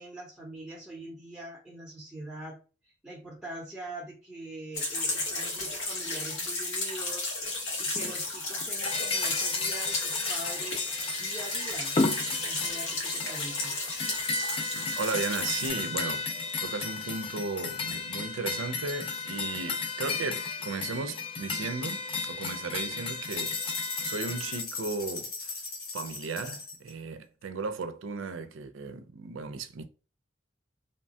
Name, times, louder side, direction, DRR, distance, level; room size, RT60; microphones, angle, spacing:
voice 1, 0.0-2.6 2.8-12.0 12.5-13.7, right 1 dB, 5° right, 0.6 m, -43 dB
sound 1, 4.7-15.7, left 2 dB, 80° left, 1.1 m, -33 dB
sound 2, 7.4-8.2 8.6-24.6, left 4 dB, 25° left, 0.3 m, -34 dB
voice 2, 14.7-16.3 16.6-23.6 24.0-25.5 25.9-29.8, right 4 dB, 90° right, 0.4 m, -35 dB
sound 3, 23.2-26.9, left 4 dB, 50° left, 0.9 m, -38 dB
2.9 x 2.2 x 2.6 m
head